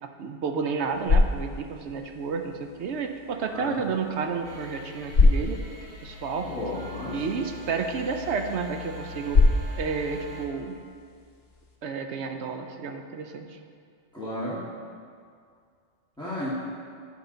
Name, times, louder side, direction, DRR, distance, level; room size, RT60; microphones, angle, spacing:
voice 1, 0.0-5.6 6.0-6.5 7.1-9.4 9.8-10.8 11.8-13.6, right 5 dB, 70° right, 5 dB, 0.9 m, -31 dB
sound 1, 0.7-11.8, left 3 dB, 55° left, 1.3 m, -28 dB
sound 2, 4.4-10.5, left 3 dB, 35° right, 1.0 m, -42 dB
voice 2, 6.4-7.4 14.1-14.6 16.2-16.6, left 1 dB, 5° left, -10 dB, 1.7 m, -33 dB
10.0 x 5.7 x 3.9 m, 2.2 s
omnidirectional pair, 1.3 m